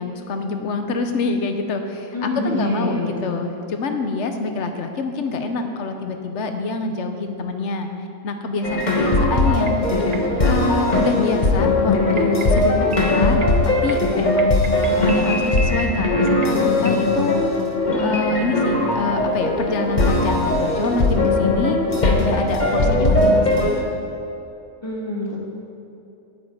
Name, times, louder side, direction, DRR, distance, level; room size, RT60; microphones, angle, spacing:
voice 1, 0.0-7.9 8.2-9.8 10.4-13.5 13.8-17.3 18.0-21.8 22.2-23.7, left 3 dB, 55° left, 6 dB, 1.2 m, -26 dB
voice 2, 2.1-3.4 9.5-10.4 22.8-23.1 24.8-25.4, left 1 dB, 20° left, -4 dB, 2.0 m, -27 dB
sound 1, 8.6-23.8, left 2 dB, 35° left, 1.2 m, -19 dB
sound 2, 9.4-17.1, right 2 dB, 35° right, 0.8 m, -36 dB
8.7 x 8.5 x 8.7 m, 2.8 s
omnidirectional pair, 1.5 m